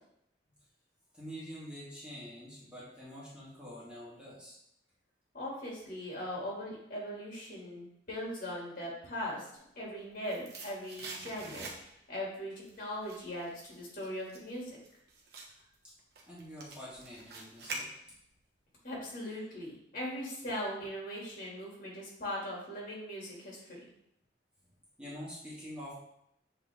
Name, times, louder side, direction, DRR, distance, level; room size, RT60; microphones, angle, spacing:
voice 1, 1.1-4.6 16.2-17.9 25.0-25.9, equal, 5° right, -9 dB, 2.0 m, -46 dB
voice 2, 5.3-9.5 9.8-14.8 18.8-23.9, equal, 50° left, -4 dB, 2.4 m, -40 dB
sound 1, 9.7-12.2 12.5-18.4 18.7-18.8, right 3 dB, 65° right, 1.1 m, -46 dB
7.9 x 3.4 x 3.6 m, 0.78 s
head